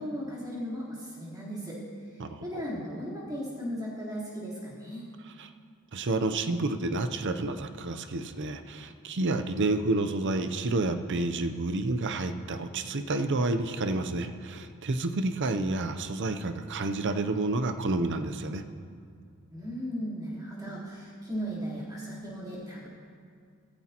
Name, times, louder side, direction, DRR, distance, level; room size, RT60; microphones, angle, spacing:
voice 1, 0.0-5.1 19.5-22.9, equal, 15° right, -8 dB, 3.6 m, -37 dB
voice 2, 5.9-18.6, right 2 dB, 55° right, 8 dB, 0.6 m, -29 dB
15.0 x 14.5 x 2.9 m, 2.3 s
head